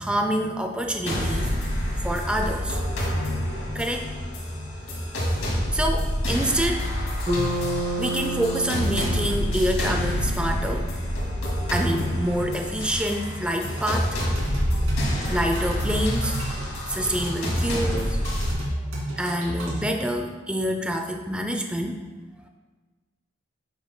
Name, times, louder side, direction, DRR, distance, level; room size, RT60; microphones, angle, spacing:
voice 1, 0.0-1.7 2.0-2.8 3.7-4.1 5.7-6.9 8.0-10.9 11.7-14.2 15.1-16.4 16.9-18.2 19.2-22.0, equal, 5° right, 4 dB, 0.4 m, -27 dB
sound 1, 1.1-18.5, equal, 80° left, 2.2 m, -27 dB
Bass guitar, 7.3-11.6, right 1 dB, 20° right, 2.2 m, -31 dB
sound 2, 13.6-19.8, equal, 70° right, 2.5 m, -31 dB
10.5 x 7.1 x 2.2 m, 1.4 s
head